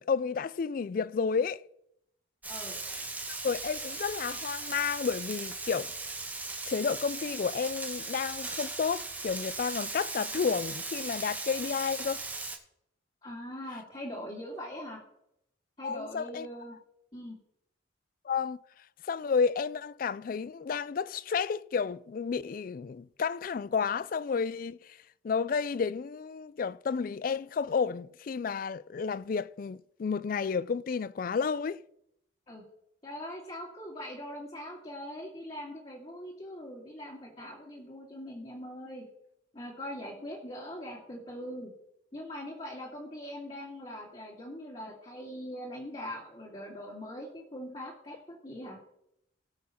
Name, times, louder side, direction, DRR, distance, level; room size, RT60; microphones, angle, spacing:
voice 1, 0.0-1.6 3.4-5.9 6.7-12.2 15.8-16.5 18.2-18.6 19.0-25.0 25.2-31.8, left 5 dB, 45° left, 0.3 m, -31 dB
Frying (food), 2.4-12.6, right 3 dB, 10° right, 1.1 m, -38 dB
voice 2, 2.5-2.8 13.2-15.0 15.8-16.8 17.1-17.4 32.5-32.6 33.0-39.1 39.5-41.7 42.1-48.8, equal, 30° left, 2.2 m, -42 dB
17.5 x 6.2 x 4.3 m
head